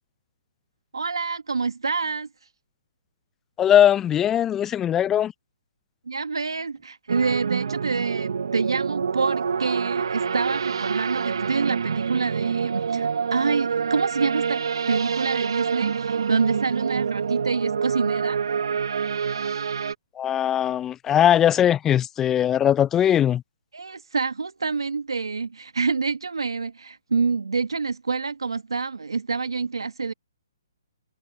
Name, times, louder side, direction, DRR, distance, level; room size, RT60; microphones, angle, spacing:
voice 1, 0.9-2.3 6.1-14.6 14.9-18.4 23.7-30.1, right 4 dB, 85° right, 1.4 m, -27 dB
voice 2, 3.6-5.3 20.2-23.4, left 10 dB, 15° left, 0.3 m, -20 dB
sound 1, 7.1-19.9, right 6 dB, 70° right, 0.5 m, -26 dB
hypercardioid pair, 145°, 3 cm